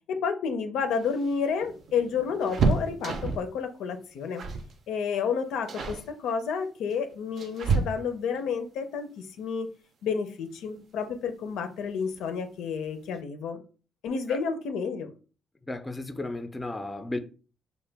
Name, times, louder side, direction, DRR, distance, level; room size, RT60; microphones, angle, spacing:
voice 1, 0.1-4.4 4.9-9.7 10.0-13.6 14.0-15.1, left 6 dB, 85° left, 0.5 m, -30 dB
sound 1, 0.9-3.6 4.4-4.7 5.0-5.3 5.7-6.1 6.9-8.4 10.1-10.2 10.6-10.7 11.9-12.3 12.6-12.7 13.0-13.2, right 4 dB, 60° right, 0.5 m, -29 dB
voice 2, 15.7-17.2, left 2 dB, 15° left, 0.4 m, -34 dB
2.9 x 2.1 x 3.4 m
cardioid pair, 90°, 0 cm